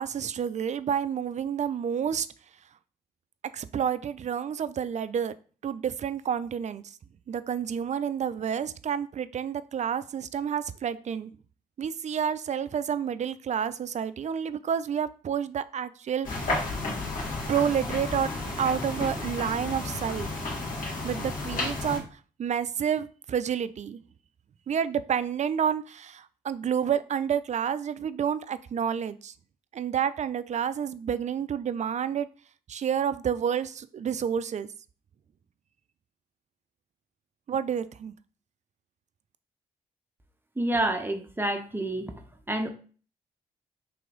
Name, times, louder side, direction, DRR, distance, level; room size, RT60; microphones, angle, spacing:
voice 1, 0.0-2.3 3.5-5.3 5.6-6.8 7.3-11.3 11.8-16.7 17.5-18.3 18.6-20.3 21.0-22.1 22.4-24.0 24.7-29.3 29.7-32.3 32.7-34.7 37.5-38.1, right 8 dB, 45° right, 14 dB, 0.4 m, -29 dB
sound 1, 16.2-22.0, left 2 dB, 55° left, 1.8 m, -32 dB
voice 2, 40.6-42.1 42.5-42.7, right 1 dB, 10° right, 4 dB, 0.7 m, -28 dB
3.3 x 3.0 x 3.8 m, 0.40 s
hypercardioid pair, 45°, 17 cm